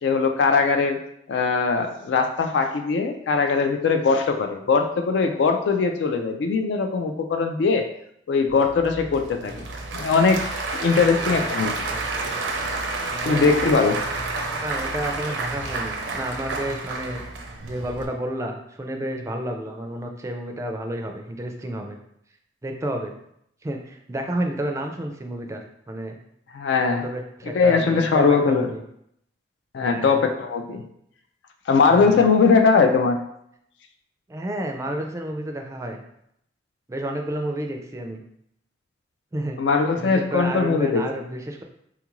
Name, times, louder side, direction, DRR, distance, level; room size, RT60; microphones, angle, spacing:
voice 1, 0.0-1.0 1.3-7.9 8.3-9.7 9.9-10.4 10.8-11.7 13.2-14.0 26.5-27.0 27.5-28.7 29.7-30.8 31.7-33.2 39.6-41.0, left 4 dB, 70° left, 6 dB, 0.3 m, -20 dB
Applause / Crowd, 8.5-18.1, right 3 dB, 80° right, 0.5 m, -30 dB
voice 2, 10.9-12.1 13.1-13.7 14.6-17.2 17.7-22.0 22.6-23.1 23.6-26.2 26.8-28.8 29.8-30.2 31.8-32.3 34.3-36.0 36.9-38.2 39.3-39.6 40.0-41.6, right 1 dB, 15° right, 3 dB, 0.3 m, -31 dB
3.5 x 2.4 x 3.0 m, 0.73 s
head